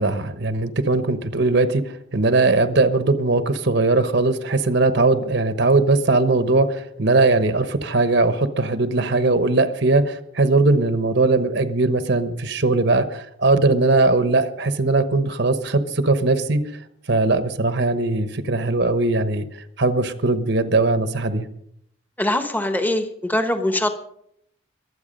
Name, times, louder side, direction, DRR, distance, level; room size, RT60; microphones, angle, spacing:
voice 1, 0.0-16.6 17.1-19.4 19.8-21.5, right 3 dB, 55° right, 10 dB, 1.1 m, -20 dB
voice 2, 22.2-23.9, left 1 dB, 10° left, 7 dB, 1.1 m, -22 dB
22.5 x 8.2 x 5.3 m, 0.72 s
head